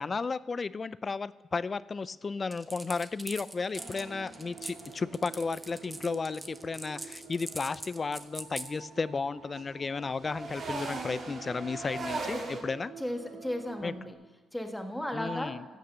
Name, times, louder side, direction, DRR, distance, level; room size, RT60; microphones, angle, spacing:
voice 1, 0.0-12.9 13.8-13.9 15.1-15.6, left 4 dB, 35° left, 18 dB, 0.4 m, -34 dB
sound 1, 2.5-8.7, right 2 dB, 15° right, 0.9 m, -42 dB
sound 2, 3.7-8.2 8.6-12.6, right 3 dB, 50° right, 2.6 m, -41 dB
sound 3, 4.0-14.1, right 7 dB, 85° right, 1.6 m, -50 dB
voice 2, 13.0-14.2 14.5-15.6, left 1 dB, 5° left, 4 dB, 1.5 m, -35 dB
14.5 x 6.6 x 7.9 m, 1.3 s
cardioid pair, 90°, 0 cm